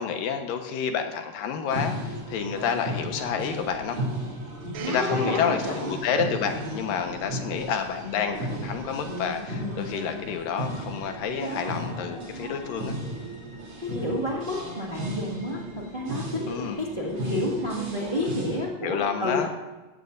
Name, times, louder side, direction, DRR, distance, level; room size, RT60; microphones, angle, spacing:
voice 1, 0.0-4.0 4.9-13.0 16.5-16.8 18.8-19.5, left 7 dB, 85° left, 5 dB, 2.9 m, -29 dB
sound 1, 1.7-18.6, equal, 40° right, 3.9 m, -35 dB
Domestic sounds home sounds, 4.7-9.6 10.4-10.5, right 7 dB, 65° right, 2.0 m, -44 dB
voice 2, 4.8-6.0 13.8-19.5, left 1 dB, 20° right, -4 dB, 1.5 m, -30 dB
16.5 x 14.5 x 2.6 m, 1.2 s
omnidirectional pair, 3.8 m